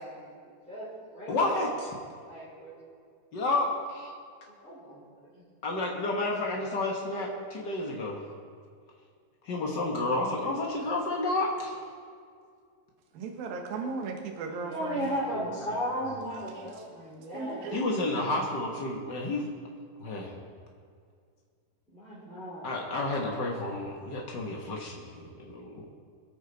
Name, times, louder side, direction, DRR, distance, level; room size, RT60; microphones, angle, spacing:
voice 1, 0.0-1.9 2.2-2.9 4.6-5.0 5.3-5.4 6.6-6.7 7.1-7.3 14.6-17.7 21.9-22.8, equal, ahead, -12 dB, 3.8 m, -36 dB
voice 2, 1.3-1.9 3.3-4.1 5.6-8.2 9.4-11.8 17.7-19.4 20.0-20.3 22.6-25.9, left 2 dB, 85° left, -1 dB, 0.9 m, -31 dB
voice 3, 13.1-15.1 16.6-16.7 17.3-17.8, right 4 dB, 75° right, 3 dB, 3.1 m, -36 dB
24.5 x 8.9 x 4.1 m, 2.2 s
omnidirectional pair, 4.2 m